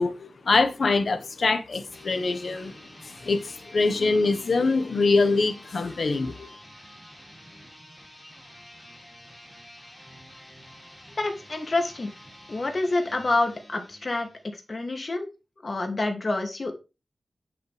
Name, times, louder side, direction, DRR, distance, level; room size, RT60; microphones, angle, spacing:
voice 1, 0.0-2.7 3.0-6.5, left 3 dB, 60° left, 1.4 m, -24 dB
sound 1, 1.8-14.6, equal, 10° left, 4.8 m, -49 dB
voice 2, 11.2-12.1 12.5-15.3 15.6-16.7, left 2 dB, 40° left, 2.5 m, -27 dB
9.7 x 7.8 x 3.4 m
wide cardioid pair, 110°, 0 cm